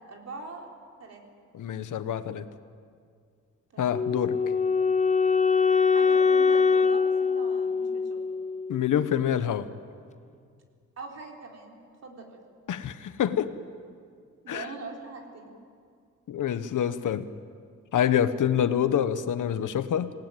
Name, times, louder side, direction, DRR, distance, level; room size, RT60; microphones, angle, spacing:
voice 1, 0.1-0.7 1.0-1.4 3.7-3.9 5.9-8.2 11.0-11.8 12.0-12.4 14.4-15.5, right 3 dB, 50° right, 1 dB, 4.1 m, -42 dB
voice 2, 1.5-2.4 3.8-4.4 8.7-9.7 12.7-13.5 14.5-14.7 16.3-17.3 17.9-20.1, left 9 dB, 70° left, 11 dB, 1.1 m, -26 dB
Wind instrument woodwind instrument, 3.9-9.0, left 5 dB, 20° left, 0.6 m, -23 dB
26.5 x 19.0 x 9.2 m, 2.3 s
wide cardioid pair, 145°, 32 cm